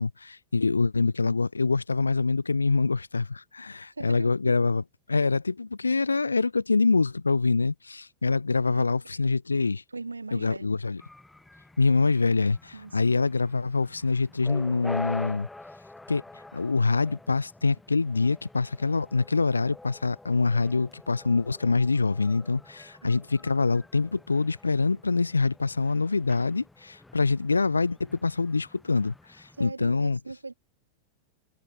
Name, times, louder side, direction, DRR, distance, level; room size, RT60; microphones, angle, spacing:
voice 1, 0.0-4.8 5.1-9.8 10.3-11.0 11.8-15.5 16.1-16.2 16.5-30.2, left 4 dB, 80° left, 0.6 m, -25 dB
voice 2, 3.9-4.6 8.7-9.2 9.9-10.8 12.7-13.2 23.0-23.2 29.6-30.5, right 3 dB, 80° right, 1.8 m, -40 dB
sound 1, 11.0-29.7, left 2 dB, 5° left, 4.6 m, -46 dB
figure-of-eight pair, 90°, 0 cm